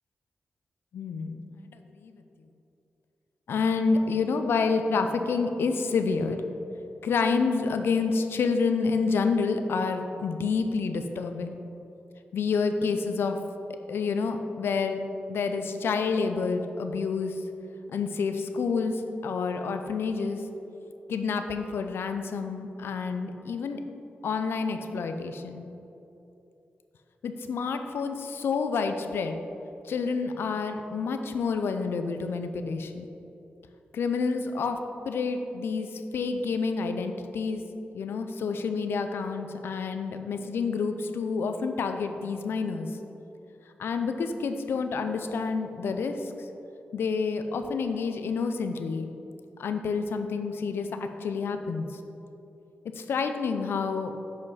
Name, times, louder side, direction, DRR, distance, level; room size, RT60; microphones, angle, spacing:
voice 1, 0.9-1.4 1.6-2.2 3.5-6.4 7.0-11.6 12.3-13.4 13.9-15.0 15.3-17.4 17.9-20.4 21.1-23.8 24.2-25.7 27.2-29.4 29.8-33.1 33.9-34.8 35.0-37.6 37.9-42.9 43.8-46.3 46.9-49.1 49.6-51.9 52.8-54.1, left 4 dB, 85° left, 7 dB, 0.5 m, -28 dB
7.2 x 5.1 x 4.0 m, 2.9 s
cardioid pair, 75°, 4 cm